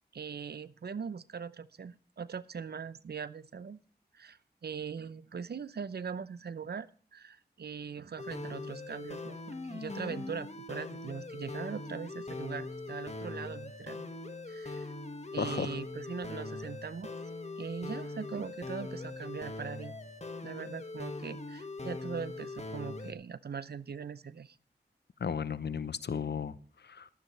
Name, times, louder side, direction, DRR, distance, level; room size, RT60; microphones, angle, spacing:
voice 1, 0.1-3.8 4.1-14.1 14.5-14.9 15.3-17.1 17.6-20.0 20.4-24.6, right 6 dB, 75° right, 17 dB, 0.6 m, -41 dB
sound 1, 8.2-23.1, left 3 dB, 40° left, 1.7 m, -41 dB
voice 2, 15.4-15.8 25.2-26.6 26.8-27.1, left 6 dB, 80° left, 15 dB, 0.8 m, -34 dB
15.0 x 12.5 x 3.3 m, 0.42 s
cardioid pair, 45°, 17 cm